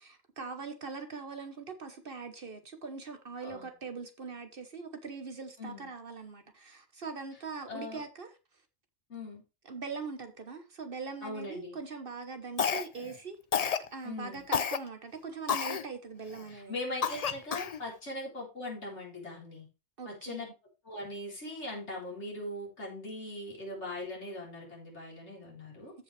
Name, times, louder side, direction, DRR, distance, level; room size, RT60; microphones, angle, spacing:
voice 1, 0.0-8.3 9.6-13.4 13.9-16.7 20.0-20.5, right 4 dB, 55° right, 1.3 m, -42 dB
voice 2, 7.7-8.0 9.1-9.4 11.2-11.8 14.0-14.4 16.5-19.7 20.1-20.5 20.9-25.9, left 1 dB, 85° left, 4.3 m, -40 dB
Cough, 12.6-13.1 13.5-13.9 14.5-14.8 15.5-15.8 16.4-16.5 17.0-17.8, left 7 dB, 45° left, 0.6 m, -30 dB
14.0 x 5.5 x 3.3 m
omnidirectional pair, 1.1 m